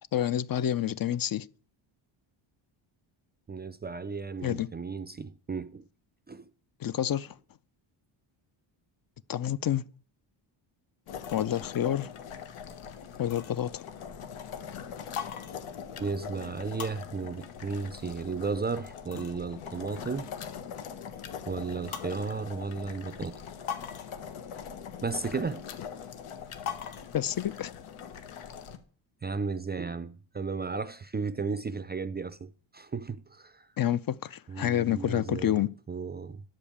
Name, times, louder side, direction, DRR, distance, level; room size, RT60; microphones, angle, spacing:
voice 1, 0.1-1.5 4.4-4.7 6.8-7.4 9.3-9.9 11.3-12.1 13.2-13.8 27.1-27.7 33.8-35.7, left 11 dB, 45° left, 0.6 m, -28 dB
voice 2, 3.5-5.8 6.3-6.5 16.0-20.3 21.5-23.4 25.0-25.6 29.2-33.7 34.5-35.6 35.9-36.4, right 4 dB, 20° right, 0.4 m, -34 dB
sound 1, 11.1-28.8, left 7 dB, 90° left, 1.5 m, -41 dB
12.0 x 5.2 x 8.6 m
cardioid pair, 110°, 49 cm